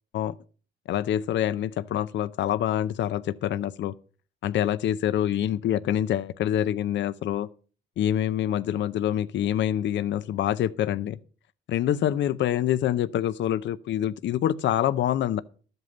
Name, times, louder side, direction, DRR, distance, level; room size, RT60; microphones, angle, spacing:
voice 1, 0.9-3.9 4.4-7.5 8.0-11.2 11.7-15.4, left 11 dB, 70° left, 0.6 m, -26 dB
12.5 x 8.0 x 5.4 m
cardioid pair, 90°, 20 cm